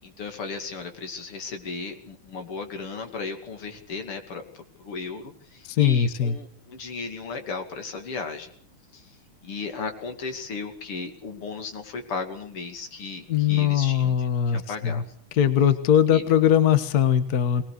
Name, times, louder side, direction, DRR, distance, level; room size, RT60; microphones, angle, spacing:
voice 1, 0.0-4.4 4.8-8.5 8.9-9.2 9.4-15.0 16.1-16.2, left 4 dB, 85° left, 5 dB, 3.4 m, -35 dB
voice 2, 5.6-6.4 13.3-15.0 15.3-17.6, left 9 dB, 50° left, 11 dB, 1.6 m, -21 dB
21.5 x 19.5 x 6.7 m, 0.62 s
omnidirectional pair, 2.4 m